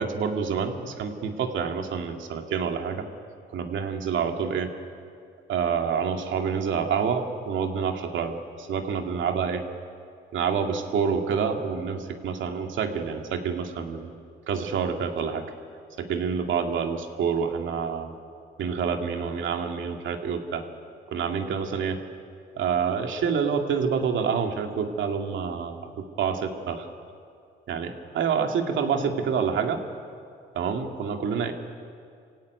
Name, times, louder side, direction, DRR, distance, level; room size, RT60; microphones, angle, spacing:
voice 1, 0.0-3.1 3.5-4.7 5.5-9.6 10.3-14.1 14.5-15.4 16.0-18.1 18.6-20.6 21.1-22.0 22.5-26.9 27.7-29.8 30.5-31.5, right 6 dB, 75° right, 4 dB, 2.4 m, -27 dB
25.5 x 16.5 x 9.4 m, 2.3 s
cardioid pair, 90°, 20 cm